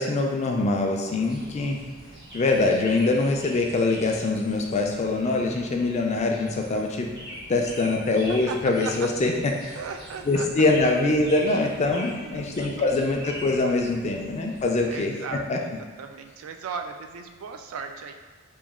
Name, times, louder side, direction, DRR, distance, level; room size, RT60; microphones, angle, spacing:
voice 1, 0.0-1.8 2.3-7.1 7.5-9.8 10.3-15.6, left 2 dB, 35° left, 2 dB, 0.4 m, -24 dB
sound 1, 1.2-15.0, equal, 55° right, 1.0 m, -43 dB
voice 2, 2.1-2.4 8.5-8.6 8.8-8.9 9.3-9.4 9.8-10.7 12.0-13.1 14.1-14.4 14.9-18.1, right 5 dB, 80° right, 6 dB, 0.3 m, -38 dB
3.0 x 2.2 x 3.5 m, 1.5 s
head